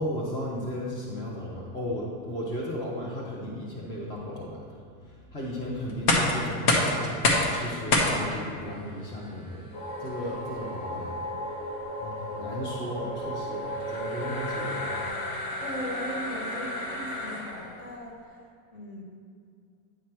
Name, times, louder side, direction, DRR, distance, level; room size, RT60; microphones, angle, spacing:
voice 1, 0.0-9.7 10.0-11.2 12.0-15.1, equal, 10° left, -3 dB, 0.3 m, -35 dB
sound 1, 5.9-17.8, left 2 dB, 90° left, 1.4 m, -30 dB
sound 2, 9.7-15.1, equal, 60° left, 1.7 m, -35 dB
voice 2, 15.6-19.0, left 1 dB, 40° left, 0 dB, 1.4 m, -38 dB
9.2 x 3.2 x 5.8 m, 2.3 s
supercardioid pair, 145°, 46 cm